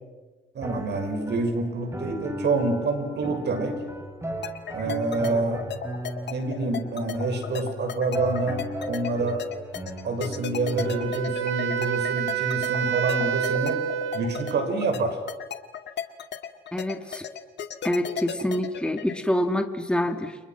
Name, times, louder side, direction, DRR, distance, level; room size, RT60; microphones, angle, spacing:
voice 1, 0.5-3.8 4.7-5.6 6.3-9.5 10.0-13.8 14.1-15.2, right 3 dB, 60° right, 5 dB, 6.8 m, -27 dB
sound 1, 0.6-11.0, equal, 15° right, 5.5 m, -35 dB
sound 2, 4.4-19.1, left 9 dB, 60° left, 2.2 m, -35 dB
Wind instrument woodwind instrument, 10.8-14.8, right 9 dB, 85° right, 2.3 m, -28 dB
voice 2, 16.7-17.2 17.8-20.4, left 1 dB, 5° left, 5 dB, 2.9 m, -26 dB
30.0 x 30.0 x 6.2 m, 1.3 s
cardioid pair, 90°, 20 cm